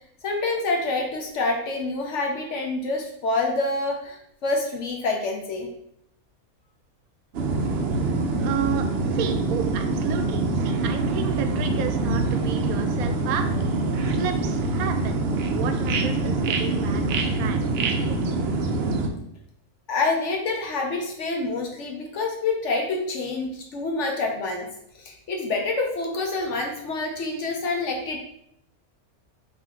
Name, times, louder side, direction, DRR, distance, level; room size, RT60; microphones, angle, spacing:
voice 1, 0.2-5.7 19.9-24.7 24.9-28.3, left 3 dB, 60° left, 1 dB, 0.9 m, -27 dB
sound 1, 7.3-19.1, right 3 dB, 65° right, 0.7 m, -25 dB
voice 2, 8.4-13.5 14.1-15.2 15.5-18.4, right 9 dB, 80° right, 7 dB, 1.0 m, -32 dB
3.9 x 3.0 x 4.3 m, 0.74 s
omnidirectional pair, 1.5 m